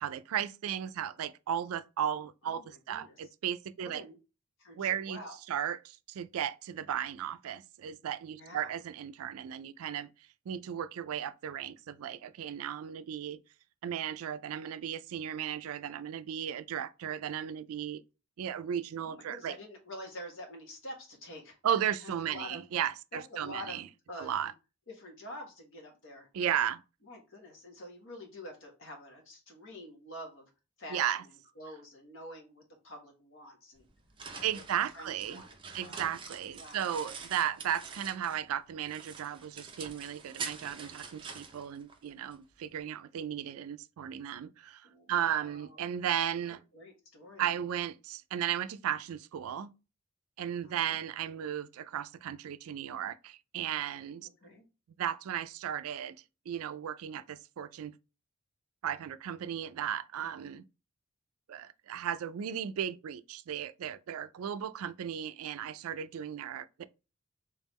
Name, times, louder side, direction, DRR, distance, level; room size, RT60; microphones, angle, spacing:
voice 1, 0.0-4.0 4.8-5.2 5.5-10.1 10.5-13.4 13.8-18.0 18.4-19.6 21.6-23.9 24.2-24.5 26.3-26.8 30.9-31.2 34.4-35.4 35.7-46.6 47.4-49.7 50.4-54.2 55.0-56.2 56.5-57.9 58.8-60.6 61.5-66.8, right 9 dB, 75° right, 0.3 m, -35 dB
voice 2, 2.4-3.2 3.8-4.1 4.6-5.4 8.3-8.8 19.0-21.6 22.0-22.6 23.1-24.3 24.9-26.3 27.0-30.5 30.8-33.8 34.3-35.5 35.8-36.1 36.6-37.1 44.8-45.8 46.5-47.5 50.6-51.0 54.2-54.6, equal, 65° left, 1.4 m, -47 dB
sound 1, 33.8-38.5 38.8-42.4, right 5 dB, 25° right, 0.6 m, -45 dB
3.6 x 3.5 x 3.1 m
head